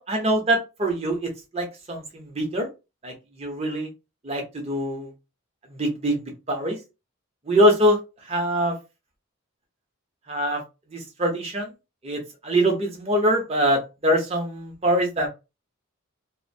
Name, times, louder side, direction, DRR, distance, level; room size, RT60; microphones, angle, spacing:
voice 1, 0.0-2.7 3.0-3.9 4.2-5.1 5.7-6.2 6.5-6.8 7.5-8.0 8.3-8.7 10.3-10.6 10.9-11.7 12.0-15.3, equal, 30° right, 1 dB, 0.7 m, -23 dB
2.5 x 2.1 x 2.6 m, 0.27 s
head